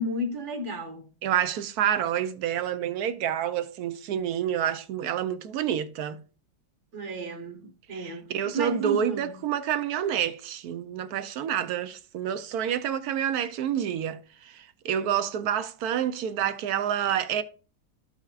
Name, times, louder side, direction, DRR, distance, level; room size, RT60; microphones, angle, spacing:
voice 1, 0.0-1.0 6.9-9.3, equal, 45° right, 1.4 m, -33 dB
voice 2, 1.2-6.2 7.9-17.4, right 9 dB, 70° right, 0.9 m, -28 dB
13.5 x 5.7 x 2.3 m
omnidirectional pair, 2.0 m